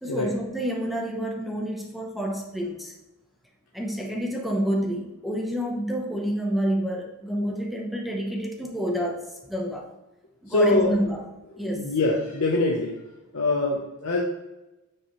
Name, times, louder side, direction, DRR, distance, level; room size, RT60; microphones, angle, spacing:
voice 1, 0.0-2.9 3.7-9.9 10.4-11.2 11.6-11.9, equal, ahead, 1 dB, 0.9 m, -28 dB
voice 2, 10.5-10.9 11.7-12.9 13.3-14.2, left 2 dB, 75° left, -2 dB, 0.9 m, -23 dB
8.8 x 4.8 x 3.2 m, 1.0 s
head